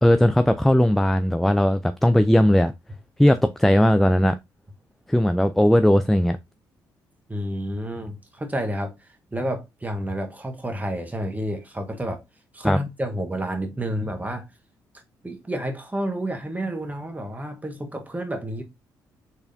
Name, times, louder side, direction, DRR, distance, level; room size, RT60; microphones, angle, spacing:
voice 1, 0.0-2.7 3.2-4.4 5.1-6.4 12.6-12.8, left 1 dB, ahead, 0.3 m, -18 dB
voice 2, 7.3-12.2 12.5-14.4 15.2-18.6, right 1 dB, 15° right, 1.4 m, -30 dB
4.3 x 3.3 x 2.6 m
hypercardioid pair, 50°, 9 cm